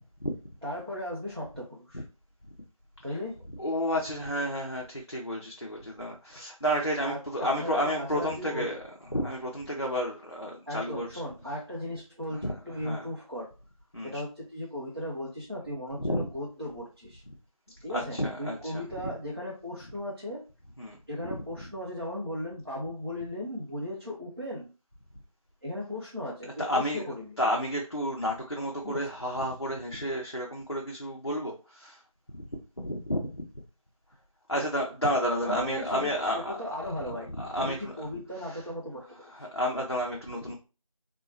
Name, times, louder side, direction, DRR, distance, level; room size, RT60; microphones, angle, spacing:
voice 1, 0.6-2.0 3.0-3.4 7.0-8.8 10.7-13.5 14.0-17.2 17.8-20.4 21.1-24.7 25.6-27.4 28.8-29.0 35.4-37.3 37.6-39.3, left 1 dB, 40° right, 0.6 m, -37 dB
voice 2, 3.6-8.8 9.1-11.1 12.3-12.5 12.8-13.1 13.9-14.1 16.0-16.3 17.9-19.0 20.8-21.0 21.6-21.7 26.6-27.0 27.4-32.0 32.4-32.5 32.8-33.3 34.5-36.6 37.0-37.9 38.4-38.6 39.3-40.6, equal, 50° left, 0.5 m, -31 dB
3.5 x 2.1 x 2.6 m
figure-of-eight pair, 180°, 19 cm